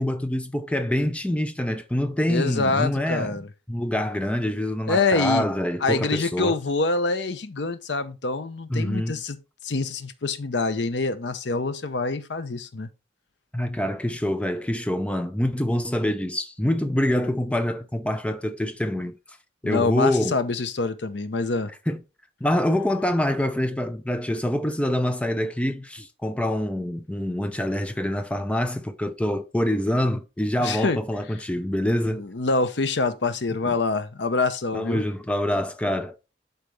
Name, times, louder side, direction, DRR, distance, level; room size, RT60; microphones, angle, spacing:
voice 1, 0.0-3.3 3.7-6.6 8.7-9.2 13.5-19.2 19.6-20.4 21.9-22.0 22.4-32.2 33.7-33.8 34.7-36.2, left 1 dB, 5° left, 0.6 m, -25 dB
voice 2, 2.3-3.5 4.9-5.4 5.8-9.4 9.6-12.9 19.6-21.7 30.6-31.0 32.1-35.0, left 3 dB, 70° left, 0.8 m, -25 dB
11.5 x 4.2 x 3.3 m
head